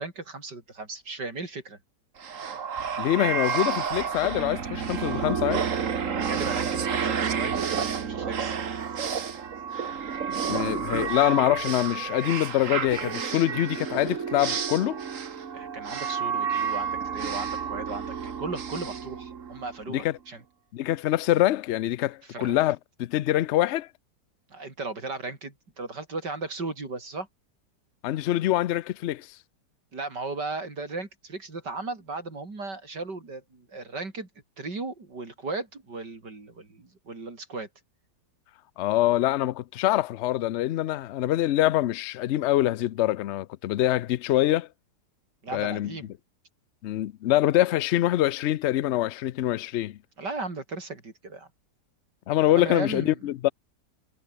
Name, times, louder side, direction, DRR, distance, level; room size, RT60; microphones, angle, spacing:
voice 1, 0.0-1.8 6.1-8.6 15.5-20.4 22.3-22.6 24.5-27.3 29.9-34.3 34.6-37.7 45.4-46.1 50.2-51.5 52.5-53.3, right 3 dB, 85° right, 5.3 m, -36 dB
sound 1, 2.2-19.8, right 6 dB, 50° right, 1.7 m, -30 dB
voice 2, 3.0-5.7 10.5-15.0 19.9-20.1 20.7-23.9 28.0-29.3 38.8-44.7 45.5-46.0 46.8-50.0 52.3-53.5, left 14 dB, 75° left, 0.6 m, -25 dB
omnidirectional pair, 1.8 m